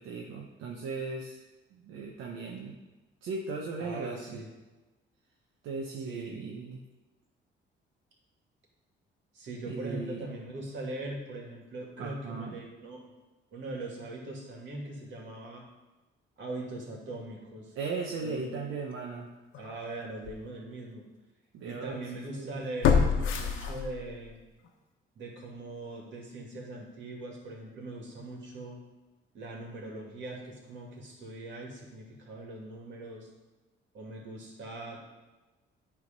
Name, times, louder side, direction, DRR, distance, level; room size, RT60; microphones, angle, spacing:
voice 1, 0.0-1.4 1.7-2.7 3.2-4.4 5.6-6.8 9.6-10.2 12.0-12.6 17.7-19.3 21.5-22.6, right 4 dB, 85° right, -1 dB, 0.9 m, -37 dB
voice 2, 3.8-4.5 6.0-6.4 9.3-13.0 13.5-15.6 16.4-17.7 18.2-18.6 19.6-21.1 21.6-24.4 25.1-28.8 29.3-33.3 33.9-35.0, right 2 dB, 65° right, -1 dB, 2.3 m, -41 dB
sound 1, 19.5-19.7 20.2-20.3 22.8-24.3 24.6-24.7, left 6 dB, 85° left, 1.0 m, -26 dB
9.5 x 3.6 x 5.2 m, 1.1 s
cardioid pair, 90°, 20 cm